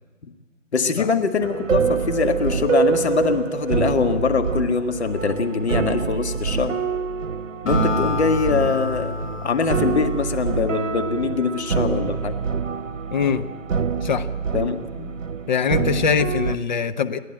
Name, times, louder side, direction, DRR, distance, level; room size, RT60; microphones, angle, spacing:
voice 1, 0.7-6.8 7.6-9.1 9.4-12.4 14.5-15.1, left 5 dB, 60° left, 7 dB, 1.9 m, -23 dB
sound 1, 1.4-16.6, right 6 dB, 85° right, 1.1 m, -26 dB
Acoustic guitar, 7.7-11.2, left 3 dB, 80° left, 6.8 m, -29 dB
voice 2, 13.1-13.5 14.0-14.3 15.5-17.2, left 6 dB, 35° left, 10 dB, 0.9 m, -22 dB
30.0 x 11.0 x 8.8 m, 1.5 s
hypercardioid pair, 155°, 38 cm